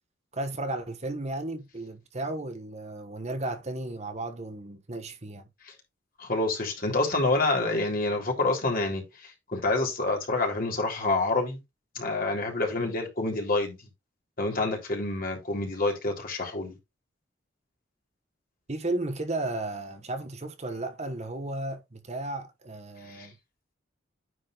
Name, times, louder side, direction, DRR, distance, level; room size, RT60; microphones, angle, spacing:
voice 1, 0.3-5.4 18.7-23.4, right 2 dB, 35° right, 1.2 m, -34 dB
voice 2, 6.2-11.6 11.9-13.8 14.4-16.8 23.1-23.3, left 2 dB, 50° left, 3.3 m, -27 dB
9.7 x 4.0 x 4.0 m
head